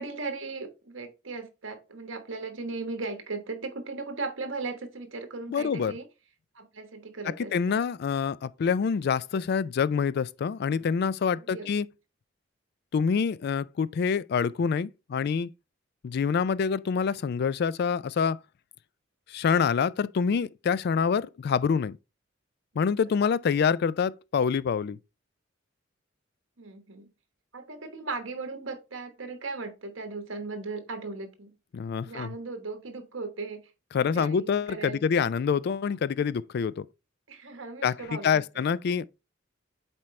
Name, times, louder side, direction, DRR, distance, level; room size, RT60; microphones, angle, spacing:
voice 1, 0.0-6.1 6.5-7.8 11.4-11.7 22.8-22.9 26.6-27.1 27.5-31.5 32.0-35.3 37.3-38.6, right 3 dB, 75° right, 1.3 m, -37 dB
voice 2, 5.5-6.0 7.5-11.9 12.9-15.5 16.0-18.4 19.3-22.0 22.8-25.0 31.7-32.3 33.9-36.9 37.8-39.0, left 6 dB, 55° left, 0.3 m, -26 dB
7.5 x 4.5 x 3.2 m
head